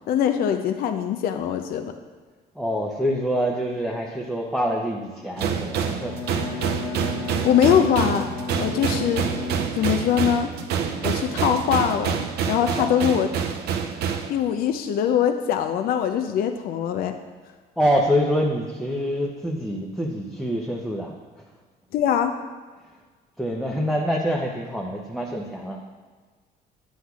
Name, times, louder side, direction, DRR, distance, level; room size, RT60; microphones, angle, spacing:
voice 1, 0.1-1.9 7.4-8.3 8.6-9.3 9.7-10.5 11.0-13.3 14.3-17.2 21.9-22.4, left 9 dB, 60° left, 7 dB, 0.4 m, -22 dB
voice 2, 2.5-6.2 12.8-12.9 17.8-21.1 23.4-25.8, equal, ahead, -2 dB, 0.6 m, -25 dB
sound 1, 5.4-14.3, right 7 dB, 70° right, 0.6 m, -27 dB
Bowed string instrument, 6.0-10.2, left 5 dB, 80° left, 1.0 m, -34 dB
8.1 x 7.7 x 2.4 m, 1.4 s
cardioid pair, 110°, 17 cm